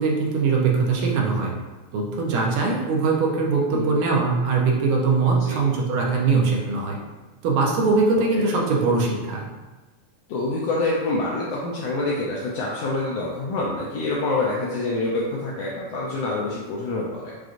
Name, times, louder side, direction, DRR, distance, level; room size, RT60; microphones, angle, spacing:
voice 1, 0.0-1.5 1.9-7.0 7.4-9.5, right 4 dB, 90° right, -1 dB, 2.2 m, -21 dB
voice 2, 10.3-17.3, left 2 dB, 80° left, -4 dB, 1.4 m, -26 dB
6.0 x 2.5 x 2.4 m, 1.2 s
omnidirectional pair, 3.4 m